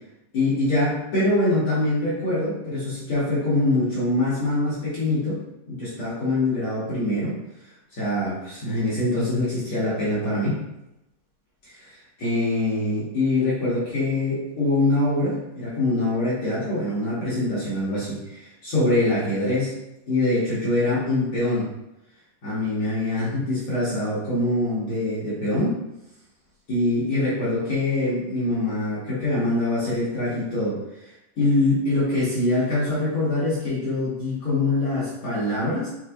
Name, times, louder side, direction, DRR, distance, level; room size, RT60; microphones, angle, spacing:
voice 1, 0.3-5.4 5.7-7.3 7.9-10.6 11.6-19.7 20.1-21.7 22.4-25.8 26.7-30.8 31.4-35.9, left 2 dB, 55° left, -10 dB, 1.5 m, -24 dB
6.2 x 3.2 x 2.3 m, 0.90 s
omnidirectional pair, 4.0 m